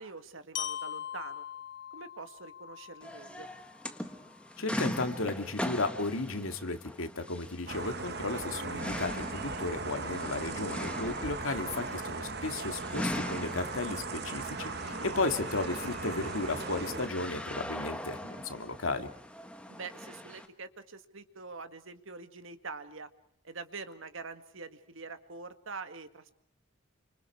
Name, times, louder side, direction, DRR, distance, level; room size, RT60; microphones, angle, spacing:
voice 1, 0.0-1.5 1.9-3.5 11.7-11.8 19.7-23.1 23.4-26.3, right 4 dB, 75° right, 9 dB, 1.8 m, -45 dB
Glockenspiel, 0.5-4.5, left 10 dB, 60° left, 1.0 m, -42 dB
sound 1, 3.0-20.5, left 1 dB, 5° left, 1.5 m, -41 dB
voice 2, 4.6-19.1, left 3 dB, 85° left, 7 dB, 2.1 m, -34 dB
sound 2, 7.7-17.1, right 3 dB, 50° right, 1.4 m, -38 dB
29.5 x 26.0 x 4.8 m, 0.63 s
head